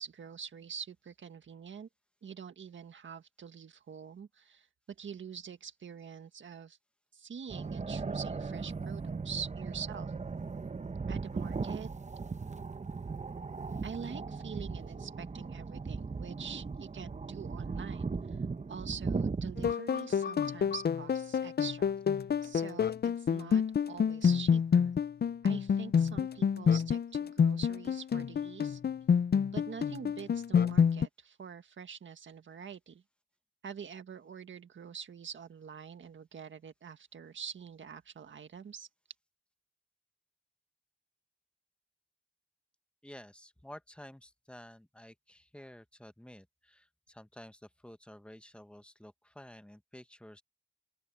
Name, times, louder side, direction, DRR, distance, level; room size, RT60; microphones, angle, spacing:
voice 1, 0.0-1.9 2.2-4.7 5.0-6.8 7.1-10.1 11.1-11.9 13.8-18.4 18.7-21.9 22.4-24.9 25.4-28.8 29.5-33.0 33.6-38.9, right 7 dB, 85° right, 1.8 m, -45 dB
sound 1, 7.5-19.7, right 4 dB, 40° right, 0.9 m, -37 dB
sound 2, 19.6-31.1, left 7 dB, 55° left, 0.5 m, -28 dB
voice 2, 43.0-50.4, left 1 dB, 5° left, 1.3 m, -52 dB
open air
cardioid pair, 45°, 19 cm